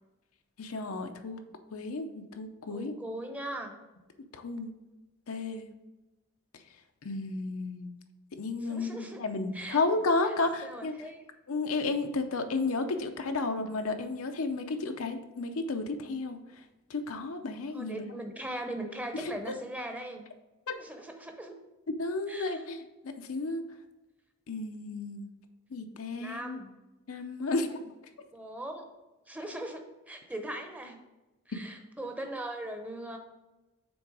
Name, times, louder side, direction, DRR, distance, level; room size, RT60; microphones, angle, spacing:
voice 1, 0.6-1.4 1.7-3.0 4.3-4.7 5.3-5.6 7.0-7.9 8.4-10.9 11.5-16.4 16.9-18.1 19.1-19.5 20.7-20.8 22.0-23.6 24.5-25.3 25.7-26.6 27.1-27.8, left 3 dB, 90° left, 6 dB, 0.7 m, -32 dB
voice 2, 2.7-3.8 8.6-9.2 9.5-9.8 10.6-11.2 17.7-20.2 20.8-21.6 22.3-22.6 26.2-26.7 28.3-28.9 29.3-31.0 31.5-33.2, right 1 dB, 5° right, 4 dB, 0.7 m, -39 dB
6.2 x 3.9 x 4.8 m, 1.1 s
head